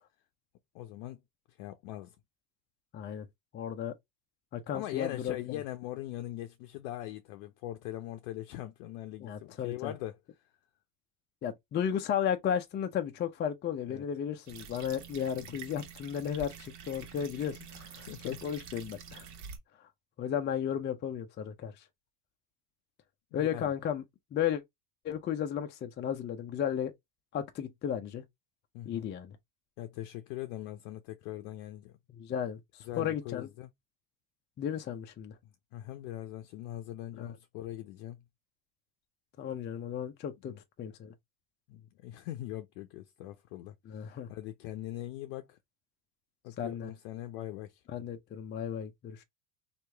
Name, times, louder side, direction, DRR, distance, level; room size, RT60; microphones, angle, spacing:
voice 1, 0.7-1.2 1.6-2.2 4.7-10.2 13.9-14.0 15.4-15.6 18.1-18.4 23.4-23.7 28.7-29.1 29.8-32.0 32.8-33.7 35.7-38.2 40.4-40.6 41.7-45.6 46.4-47.8, left 14 dB, 65° left, 0.6 m, -41 dB
voice 2, 2.9-3.3 3.5-3.9 4.5-5.6 9.2-9.9 11.4-19.3 19.8-19.9 20.2-21.8 23.3-24.0 24.3-24.6 25.0-26.9 27.3-28.2 28.9-29.4 32.1-33.5 34.6-35.4 37.2-37.3 39.4-41.1 43.9-44.3 46.6-46.9 47.9-49.2, left 9 dB, 25° left, 0.4 m, -34 dB
sound 1, 14.5-19.6, right 7 dB, 60° right, 1.2 m, -47 dB
3.0 x 2.4 x 3.3 m
supercardioid pair, 100°, 45 cm